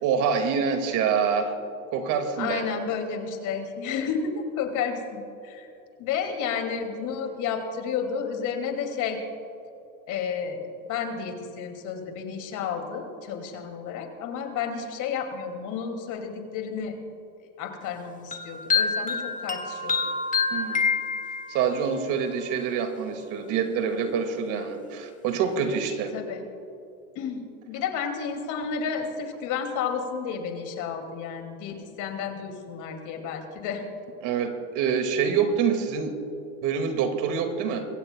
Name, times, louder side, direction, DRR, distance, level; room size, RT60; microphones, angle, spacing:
voice 1, 0.0-1.5 1.9-2.8 20.5-20.9 21.5-26.1 34.2-36.2 36.6-37.9, right 6 dB, 45° right, 7 dB, 2.0 m, -26 dB
voice 2, 2.4-5.7 6.0-9.2 10.1-16.9 17.6-20.0 26.1-26.4 27.2-33.8, left 6 dB, 45° left, 5 dB, 2.4 m, -31 dB
sound 1, 18.3-21.8, left 5 dB, 20° left, 1.6 m, -27 dB
23.5 x 16.0 x 2.2 m, 2.8 s
hypercardioid pair, 105°, 42 cm